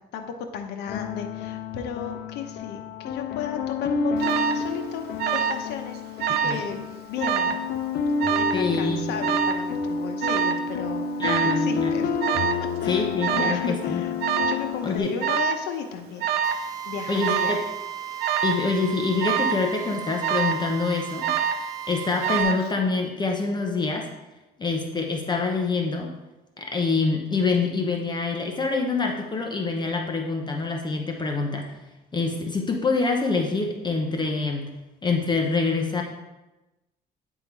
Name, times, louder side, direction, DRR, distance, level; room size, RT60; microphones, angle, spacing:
voice 1, 0.1-6.0 6.3-7.6 8.4-11.0 11.5-12.1 12.8-14.1 14.5-16.3 16.9-17.6, left 7 dB, 85° left, 5 dB, 1.0 m, -34 dB
sound 1, 0.9-15.0, left 4 dB, 60° left, 0.5 m, -29 dB
Alarm, 4.2-4.6 5.2-5.7 5.9-6.6 7.2-7.6 8.2-8.6 9.2-9.6 10.2-10.6 11.2-11.6 12.2-12.6 13.2-13.6 14.2-14.6 15.2-15.7 16.2-16.6 17.2-17.6 18.2-18.6 19.2-19.6 20.2-20.7 21.2-21.7 22.2-22.7, right 8 dB, 70° right, 0.6 m, -25 dB
voice 2, 8.5-9.1 11.2-11.9 12.9-14.0 14.8-15.1 17.1-17.6 18.4-21.3 21.9-24.1 24.6-26.1 26.6-31.7 32.1-34.7 35.0-36.0, left 4 dB, 25° left, 2 dB, 0.9 m, -26 dB
Drill, 16.4-22.4, right 9 dB, 20° right, 0.7 m, -36 dB
9.4 x 3.7 x 4.7 m, 1.0 s
cardioid pair, 110°, 17 cm